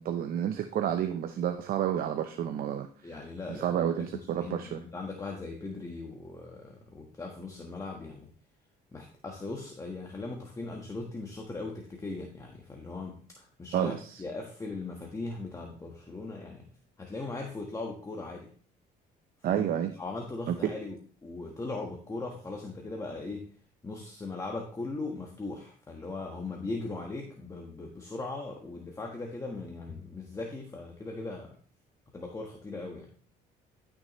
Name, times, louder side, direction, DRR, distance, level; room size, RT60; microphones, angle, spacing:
voice 1, 0.0-2.9 3.5-4.8 13.7-14.2 19.4-19.9 20.5-20.6, right 10 dB, 60° right, 7 dB, 0.8 m, -30 dB
voice 2, 3.0-3.8 4.1-8.3 8.9-13.9 14.2-16.6 17.0-18.5 19.5-19.6 20.0-23.5 23.8-31.6 32.1-33.0, left 3 dB, 20° left, 0 dB, 1.5 m, -39 dB
12.0 x 6.4 x 3.2 m, 0.43 s
cardioid pair, 110°, 17 cm